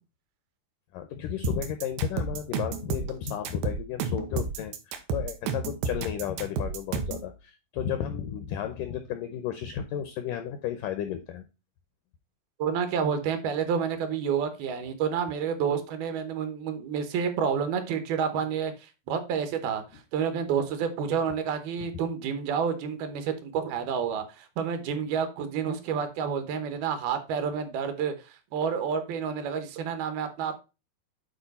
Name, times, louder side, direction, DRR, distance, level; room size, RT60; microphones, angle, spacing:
voice 1, 0.9-11.4, left 9 dB, 85° left, 1.9 m, -33 dB
sound 1, 1.4-7.3, right 5 dB, 90° right, 3.1 m, -31 dB
voice 2, 12.6-30.6, right 7 dB, 75° right, 2.8 m, -29 dB
9.3 x 4.4 x 4.1 m
omnidirectional pair, 4.6 m